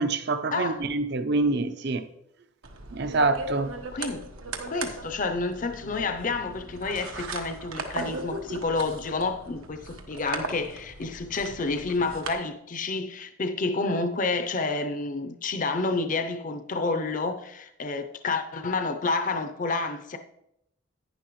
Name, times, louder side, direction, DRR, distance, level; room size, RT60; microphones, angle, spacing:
voice 1, 0.0-2.0 2.9-3.7, right 3 dB, 50° right, 0.6 m, -26 dB
voice 2, 0.5-0.8 3.9-4.2 4.6-20.2, left 3 dB, 40° left, 0.6 m, -29 dB
sound 1, 2.6-12.3, right 3 dB, 85° right, 1.2 m, -38 dB
11.0 x 9.8 x 3.1 m
head